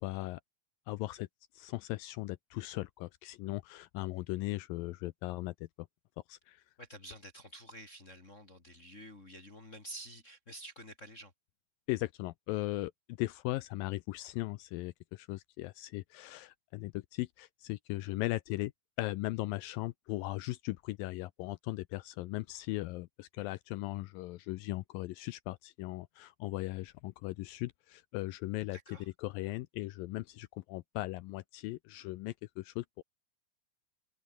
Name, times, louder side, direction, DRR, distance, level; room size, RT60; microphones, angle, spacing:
voice 1, 0.0-0.4 0.9-1.3 1.5-5.7 6.3-6.6 11.9-12.9 13.2-18.7 19.0-28.8 29.2-32.9, left 19 dB, 80° left, 2.1 m, -38 dB
voice 2, 6.8-11.3 28.7-29.1, right 1 dB, 25° left, 2.1 m, -49 dB
omnidirectional pair, 4.5 m